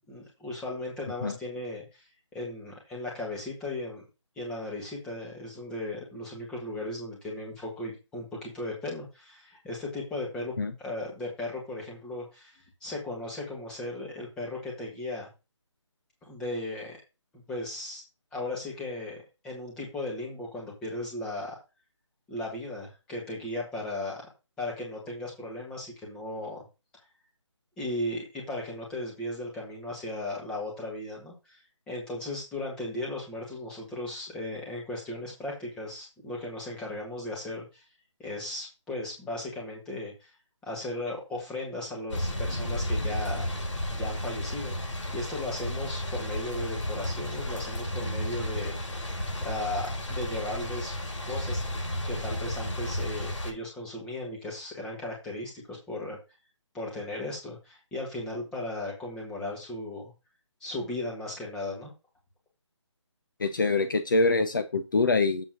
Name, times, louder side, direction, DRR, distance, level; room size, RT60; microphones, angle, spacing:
voice 1, 0.1-2.0 2.3-4.0 4.4-15.3 16.3-17.0 17.5-18.0 18.3-21.6 22.3-24.2 24.6-26.6 27.8-31.6 31.9-37.7 38.2-40.3 40.6-43.5 43.9-48.7 49.4-50.9 51.2-51.8 52.0-56.2 56.7-60.1 60.6-61.9, left 1 dB, 5° left, -3 dB, 1.7 m, -36 dB
sound 1, 42.1-53.5, left 1 dB, 80° left, 4.3 m, -32 dB
voice 2, 63.4-65.5, left 3 dB, 45° left, 9 dB, 0.9 m, -24 dB
7.7 x 4.2 x 6.2 m, 0.27 s
hypercardioid pair, 170°, 16 cm